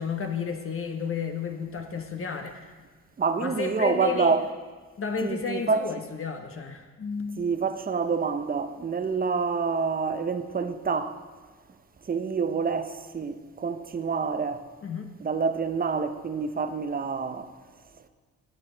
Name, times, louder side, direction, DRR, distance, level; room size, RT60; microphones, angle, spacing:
voice 1, 0.0-2.7 3.4-4.4 5.0-7.4 14.8-15.1, left 6 dB, 40° left, 1.1 m, -32 dB
voice 2, 3.2-4.5 5.2-5.8 7.4-11.1 12.1-14.6 15.2-17.5, right 5 dB, 25° right, 0.8 m, -27 dB
13.5 x 7.9 x 3.9 m
supercardioid pair, 75°, 33 cm